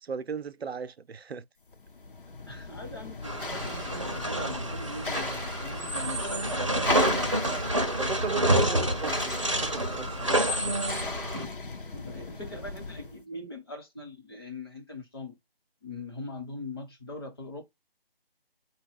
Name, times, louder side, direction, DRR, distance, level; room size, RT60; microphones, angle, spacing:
voice 1, 0.0-1.5 8.0-10.4, right 6 dB, 90° right, 0.5 m, -36 dB
sound 1, 1.7-13.2, left 3 dB, 60° left, 0.8 m, -38 dB
voice 2, 2.5-6.9 11.3-11.5 11.9-15.4 15.8-17.6, left 2 dB, 25° left, 0.9 m, -41 dB
sound 2, 3.2-11.4, right 1 dB, 30° right, 0.5 m, -28 dB
4.4 x 2.2 x 3.4 m
figure-of-eight pair, 160°, 30 cm